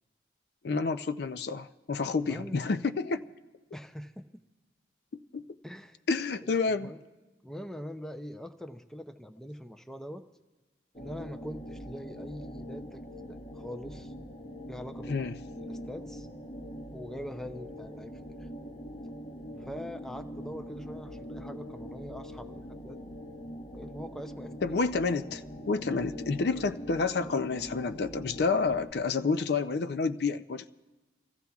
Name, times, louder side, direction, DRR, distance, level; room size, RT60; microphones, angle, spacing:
voice 1, 0.6-3.3 5.3-5.4 6.1-6.9 15.1-15.3 24.6-30.7, left 4 dB, 60° left, 11 dB, 0.4 m, -29 dB
voice 2, 2.0-2.6 3.7-4.2 5.6-6.0 6.7-7.0 7.4-10.2 10.9-14.1 14.7-15.2 15.6-16.3 16.9-18.5 19.6-23.0 23.7-24.8, equal, 5° left, 8 dB, 0.5 m, -43 dB
sound 1, 10.9-28.9, equal, 40° left, 1.0 m, -43 dB
29.0 x 15.5 x 2.3 m, 1.2 s
head